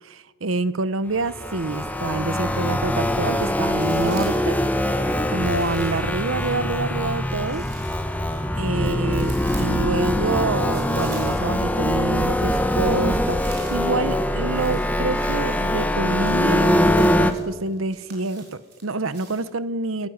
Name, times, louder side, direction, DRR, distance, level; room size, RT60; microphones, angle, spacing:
voice 1, 0.0-4.6 5.3-7.7 8.6-20.1, right 3 dB, 75° right, 15 dB, 1.0 m, -27 dB
sound 1, 1.1-17.3, left 1 dB, 10° left, 1.3 m, -23 dB
sound 2, 2.1-2.7 3.1-4.5 5.4-11.7 12.0-19.5, right 5 dB, 55° right, 6.6 m, -47 dB
23.5 x 15.0 x 9.6 m, 1.3 s
head